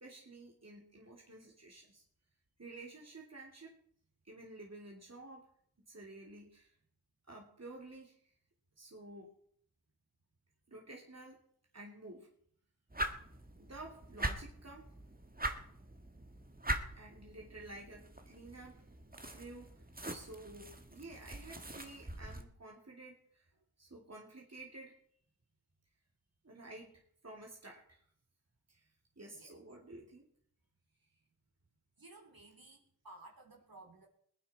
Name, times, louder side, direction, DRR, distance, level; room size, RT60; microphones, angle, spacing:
voice 1, 0.0-2.0 2.6-3.7 4.2-5.5 5.8-6.7 7.3-8.3 8.8-9.3 10.7-11.4 11.7-12.3 13.6-14.9 17.0-18.8 19.3-19.8 20.1-23.5 23.8-25.0 26.4-28.0 28.7-28.9 29.2-30.2, right 2 dB, 40° right, -1 dB, 3.1 m, -52 dB
sound 1, 12.9-22.4, right 1 dB, 20° right, 1.7 m, -42 dB
voice 2, 32.0-32.8 33.0-34.1, right 2 dB, 60° right, 1 dB, 3.7 m, -56 dB
21.0 x 9.9 x 4.4 m, 0.64 s
cardioid pair, 40°, 40 cm